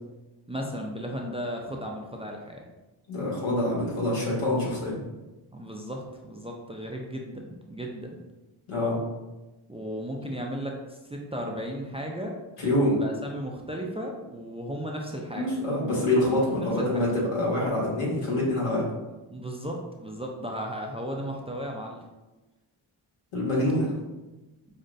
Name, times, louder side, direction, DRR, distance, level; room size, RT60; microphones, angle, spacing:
voice 1, 0.5-2.7 5.5-8.2 9.7-12.4 13.0-15.5 16.8-17.0 19.3-22.0, equal, 15° right, 0 dB, 0.4 m, -35 dB
voice 2, 3.1-5.0 8.7-9.0 12.6-13.0 15.3-18.8 23.3-23.9, left 1 dB, 85° left, -5 dB, 1.4 m, -25 dB
5.3 x 2.1 x 2.5 m, 1.1 s
cardioid pair, 55°, 50 cm